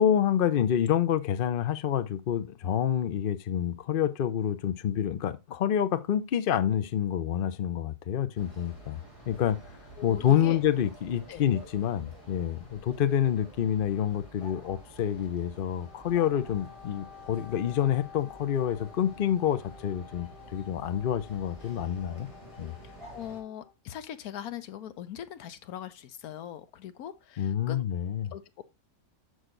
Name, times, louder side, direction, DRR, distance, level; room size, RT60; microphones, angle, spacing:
voice 1, 0.0-9.0 9.3-9.6 10.0-22.3 22.6-22.7 27.4-28.3, left 9 dB, 55° left, 0.6 m, -27 dB
sound 1, 8.3-23.4, right 1 dB, 20° left, 2.6 m, -50 dB
voice 2, 10.0-10.6 11.3-11.5 22.8-27.8 28.3-28.6, left 10 dB, 75° left, 1.2 m, -41 dB
Wind instrument woodwind instrument, 15.7-23.7, left 8 dB, 40° left, 1.1 m, -51 dB
6.4 x 6.4 x 3.8 m
omnidirectional pair, 1.6 m